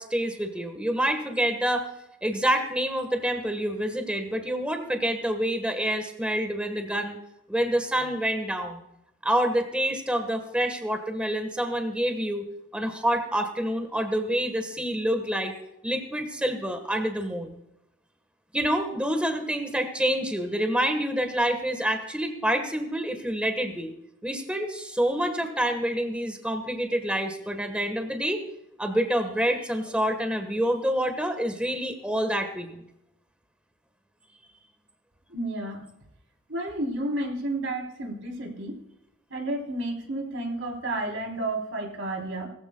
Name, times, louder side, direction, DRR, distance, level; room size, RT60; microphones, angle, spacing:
voice 1, 0.0-1.9 2.2-7.2 7.5-8.8 9.2-12.5 12.7-15.5 15.8-17.6 18.5-23.9 24.2-28.4 28.8-32.8, equal, 5° right, 6 dB, 1.3 m, -27 dB
voice 2, 35.3-35.9 36.5-38.8 39.3-42.5, right 1 dB, 75° right, 1 dB, 3.4 m, -31 dB
20.0 x 14.0 x 2.2 m, 0.81 s
head